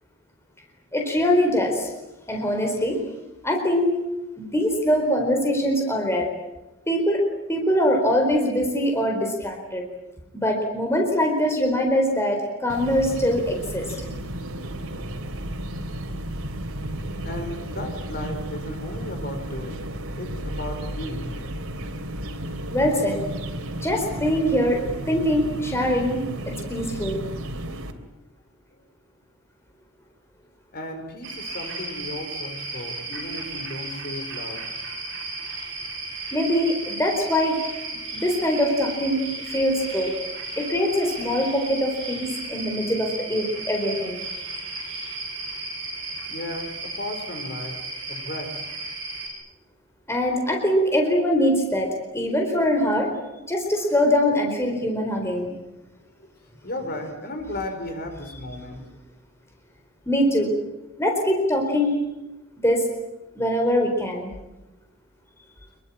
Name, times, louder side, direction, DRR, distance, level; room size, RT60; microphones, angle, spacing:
voice 1, 0.9-1.9 2.3-3.0 3.4-4.0 4.4-6.3 6.9-7.2 7.5-9.8 10.3-13.8 22.7-23.2 23.8-26.2 26.7-27.2 36.3-37.6 38.1-40.1 40.6-44.2 50.1-53.1 53.5-55.5 60.1-60.5 61.0-62.0 62.6-62.9 63.4-64.3, equal, 10° left, 2 dB, 4.4 m, -23 dB
sound 1, 12.7-27.9, right 1 dB, 80° right, 3.2 m, -33 dB
voice 2, 16.8-21.4 21.9-22.0 22.3-22.5 28.7-28.8 30.7-34.6 44.7-44.8 46.3-47.8 48.1-48.5 56.2-56.3 56.6-58.8, left 1 dB, 45° left, 6 dB, 5.0 m, -35 dB
sound 2, 31.2-49.3, right 2 dB, 60° right, 6.9 m, -34 dB
26.0 x 23.0 x 8.8 m, 1.0 s
head